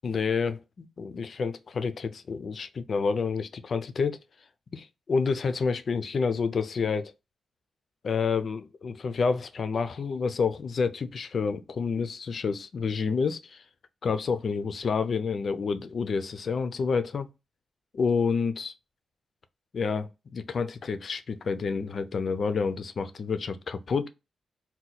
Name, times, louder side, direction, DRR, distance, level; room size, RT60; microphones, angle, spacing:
voice 1, 0.0-4.2 4.7-7.1 8.0-13.6 14.0-17.3 17.9-18.7 19.7-24.1, left 5 dB, 45° left, 0.4 m, -29 dB
2.8 x 2.1 x 4.0 m
wide cardioid pair, 145°, 0 cm